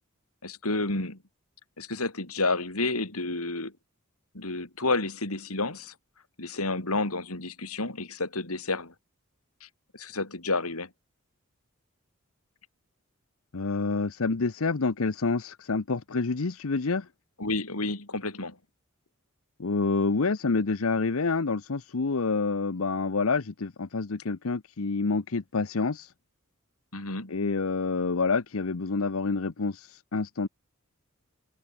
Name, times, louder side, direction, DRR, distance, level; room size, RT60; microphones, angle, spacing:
voice 1, 0.4-1.2 1.8-3.7 4.3-5.9 6.4-8.9 9.6-9.7 9.9-10.9 17.4-18.6 26.9-27.3, left 2 dB, 85° left, 4.9 m, -30 dB
voice 2, 13.5-17.1 19.6-26.1 27.3-30.5, left 4 dB, 70° left, 0.8 m, -28 dB
head